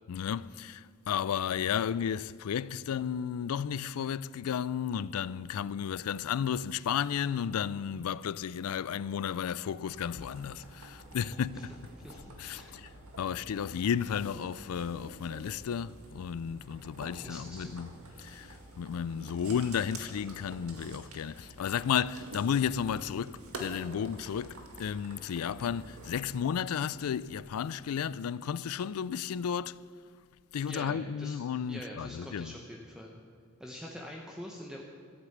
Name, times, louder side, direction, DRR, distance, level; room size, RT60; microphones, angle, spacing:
voice 1, 0.1-11.7 12.4-12.9 13.2-17.9 18.2-29.8 30.5-32.5, left 8 dB, 85° left, 0.4 m, -33 dB
sound 1, 9.9-26.4, right 2 dB, 80° right, 1.9 m, -49 dB
voice 2, 11.2-11.7 12.0-12.9 13.3-13.7 17.2-17.8 30.6-31.4 31.7-33.1 33.6-34.8, equal, 5° right, 0.9 m, -45 dB
14.0 x 8.4 x 7.9 m
head